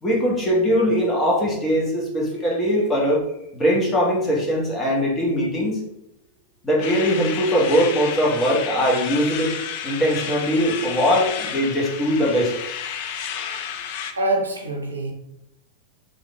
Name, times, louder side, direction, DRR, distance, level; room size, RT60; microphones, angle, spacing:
voice 1, 0.0-3.2 3.5-5.8 6.6-9.5 9.8-12.5, equal, 20° left, -4 dB, 1.2 m, -21 dB
sound 1, 6.8-14.1, left 8 dB, 50° left, 0.4 m, -31 dB
voice 2, 14.2-15.1, right 2 dB, 75° right, 1 dB, 0.6 m, -24 dB
3.4 x 2.5 x 3.3 m, 0.84 s
figure-of-eight pair, 90°, 0 cm